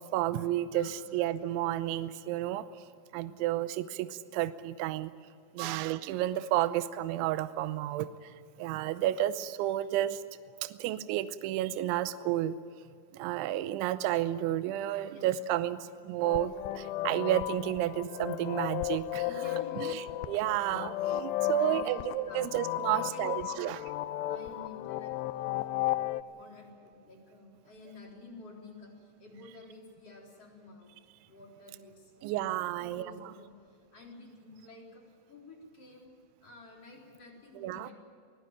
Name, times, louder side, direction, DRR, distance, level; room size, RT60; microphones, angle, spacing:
voice 1, 0.1-2.7 3.1-5.1 5.6-8.1 8.6-10.2 10.6-12.6 13.1-19.3 19.8-23.8 32.2-33.3 37.6-37.9, right 13 dB, 80° right, 13 dB, 3.0 m, -31 dB
voice 2, 0.7-1.6 5.6-6.0 15.0-16.0 19.2-20.1 21.6-22.5 22.8-23.7 24.2-26.0 26.4-30.9 31.2-32.3 32.8-36.1 36.4-37.9, left 3 dB, 35° left, -2 dB, 4.5 m, -51 dB
sound 1, 16.2-26.2, left 13 dB, 85° left, 2.3 m, -34 dB
23.0 x 17.0 x 9.0 m, 2.3 s
omnidirectional pair, 5.6 m